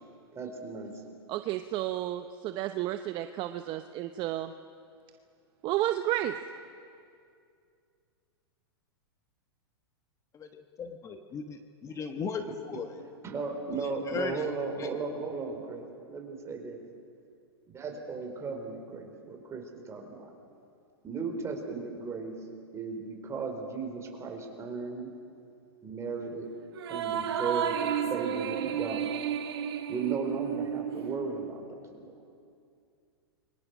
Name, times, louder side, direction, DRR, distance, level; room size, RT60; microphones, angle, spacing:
voice 1, 0.3-0.9 12.4-12.5 13.2-16.8 17.7-20.3 21.0-22.4 22.7-25.1 25.8-26.5 26.9-29.2 29.9-32.1, right 4 dB, 20° right, 2 dB, 4.5 m, -36 dB
voice 2, 1.3-4.5 5.6-6.4, right 14 dB, 35° right, 9 dB, 0.8 m, -31 dB
voice 3, 10.3-12.9 13.8-14.5 14.8-14.9, left 5 dB, 25° left, 6 dB, 1.3 m, -37 dB
sound 1, 26.7-31.5, right 9 dB, 75° right, 2.1 m, -32 dB
29.5 x 24.0 x 6.3 m, 2.4 s
hypercardioid pair, 120°, 14 cm